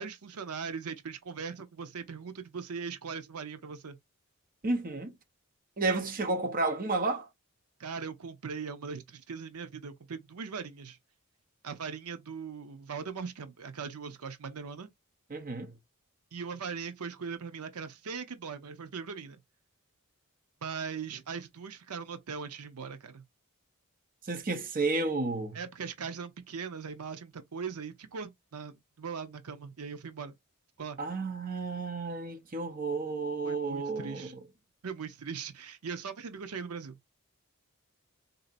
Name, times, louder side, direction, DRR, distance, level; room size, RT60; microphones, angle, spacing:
voice 1, 0.0-4.0 7.8-11.0 11.6-14.9 16.3-19.4 20.6-23.2 25.5-30.3 30.8-31.0 33.4-34.3 34.8-37.0, right 6 dB, 80° right, 0.7 m, -40 dB
voice 2, 4.6-5.1 5.8-7.3 15.3-15.7 24.3-25.6 31.0-34.3, right 3 dB, 40° right, 0.8 m, -31 dB
3.9 x 2.7 x 2.5 m
head